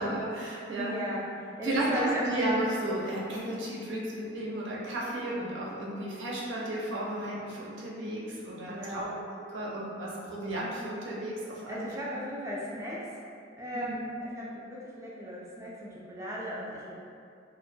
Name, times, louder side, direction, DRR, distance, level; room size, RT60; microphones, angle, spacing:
voice 1, 0.0-1.0 1.6-9.1 9.4-11.9 12.1-12.2 13.7-14.1, right 1 dB, 85° right, -5 dB, 0.5 m, -33 dB
voice 2, 0.8-2.4 8.6-9.1 11.7-13.2 13.6-16.9, equal, 15° right, -5 dB, 0.3 m, -36 dB
2.2 x 2.1 x 2.6 m, 2.4 s
head